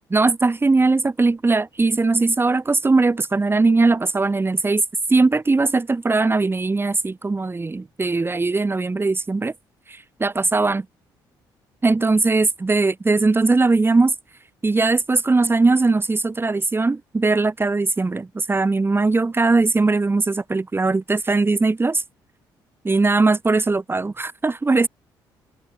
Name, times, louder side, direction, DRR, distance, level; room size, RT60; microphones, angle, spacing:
voice 1, 0.1-4.8 5.1-9.5 9.9-10.9 11.8-14.1 14.6-22.0 22.8-24.9, right 3 dB, 25° right, 2.6 m, -20 dB
supercardioid pair, 65°, 9 cm